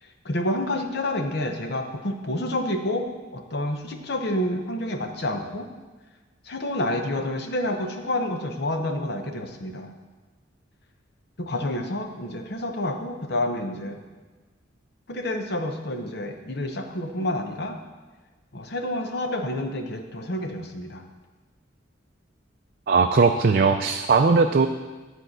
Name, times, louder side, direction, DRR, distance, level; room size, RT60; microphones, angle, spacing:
voice 1, 0.0-5.7 6.4-9.9 11.4-14.0 15.1-17.8 18.5-21.0, left 1 dB, 55° left, 4 dB, 0.9 m, -29 dB
voice 2, 22.9-24.7, right 4 dB, 50° right, 5 dB, 0.4 m, -19 dB
11.0 x 4.6 x 7.9 m, 1.3 s
head